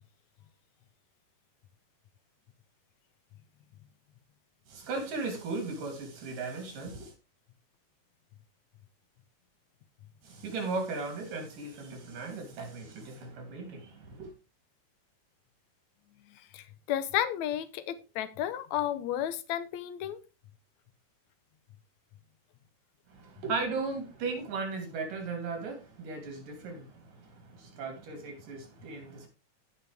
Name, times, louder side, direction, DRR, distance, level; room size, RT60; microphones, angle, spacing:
voice 1, 4.7-7.1 10.2-14.3 23.1-29.3, right 3 dB, 85° right, 4.7 m, -37 dB
voice 2, 16.3-20.2, left 11 dB, 70° left, 2.0 m, -33 dB
16.5 x 5.8 x 3.4 m
omnidirectional pair, 3.8 m